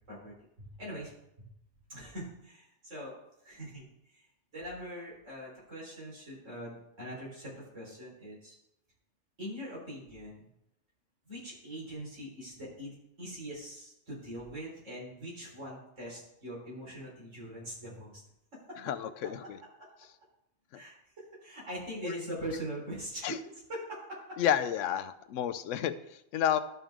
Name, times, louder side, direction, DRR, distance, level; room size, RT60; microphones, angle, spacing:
voice 1, 0.1-1.1 1.4-1.5 1.9-3.1 3.4-4.2 4.5-8.5 9.4-10.5 11.3-18.2 19.8-19.9 20.7-23.4 23.7-24.4, equal, 90° right, -5 dB, 4.3 m, -42 dB
voice 2, 18.8-19.4 20.7-20.8 22.0-22.1 23.2-23.4 24.4-26.6, left 10 dB, 90° left, 12 dB, 0.9 m, -30 dB
12.0 x 5.5 x 3.6 m, 0.80 s
omnidirectional pair, 1.3 m